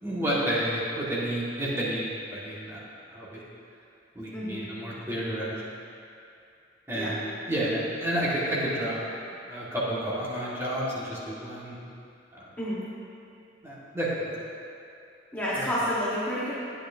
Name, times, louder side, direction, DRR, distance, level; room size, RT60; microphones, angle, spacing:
voice 1, 0.0-2.8 3.1-3.4 4.1-5.7 6.9-9.0 9.5-11.7 12.3-12.5 13.6-14.4 15.5-15.7, right 1 dB, 15° right, -9 dB, 1.7 m, -30 dB
voice 2, 4.3-4.6 6.9-7.1 12.6-12.8 15.3-16.5, equal, 10° left, -10 dB, 1.4 m, -29 dB
9.7 x 9.0 x 2.7 m, 2.5 s
head